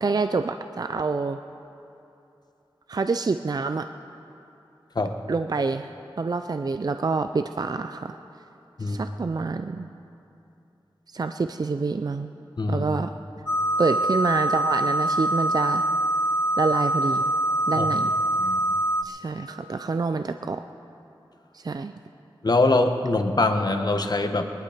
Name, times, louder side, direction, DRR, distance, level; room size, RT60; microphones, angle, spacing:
voice 1, 0.0-1.4 2.9-3.9 5.3-5.9 6.2-8.2 8.8-9.9 11.1-12.3 12.7-13.1 13.8-15.8 16.6-17.3 17.7-18.1 19.0-20.6 21.5-21.9, right 4 dB, 45° right, 9 dB, 0.4 m, -27 dB
sound 1, 13.5-19.0, right 1 dB, 30° left, 0.5 m, -24 dB
voice 2, 22.4-24.4, left 2 dB, 50° left, 6 dB, 1.1 m, -23 dB
20.5 x 11.0 x 5.0 m, 2.8 s
wide cardioid pair, 70°, 9 cm